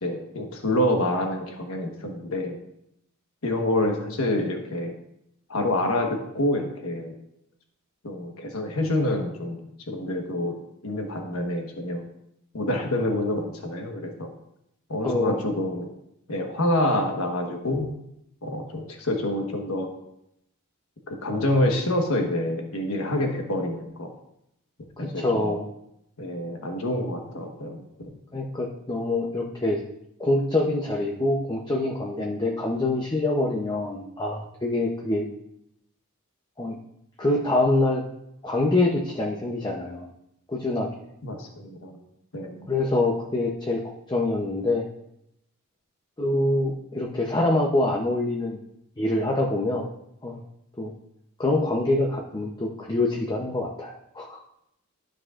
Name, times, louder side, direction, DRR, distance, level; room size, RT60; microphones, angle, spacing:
voice 1, 0.0-2.6 3.4-4.9 5.5-7.1 8.0-10.5 10.8-12.1 12.5-14.3 14.9-15.9 16.3-17.9 18.4-19.9 21.1-24.1 25.0-25.6 26.2-28.1 41.2-42.0 42.3-42.7, left 1 dB, 65° left, 2 dB, 1.3 m, -27 dB
voice 2, 15.0-15.5 25.0-25.7 28.3-29.8 30.2-35.3 36.6-36.8 37.2-38.0 38.4-40.1 40.5-40.9 42.7-44.9 46.2-48.6 49.0-49.9 50.2-50.4 50.8-50.9 51.4-54.4, left 2 dB, 20° left, 0 dB, 0.7 m, -25 dB
12.5 x 6.3 x 2.5 m, 0.80 s
head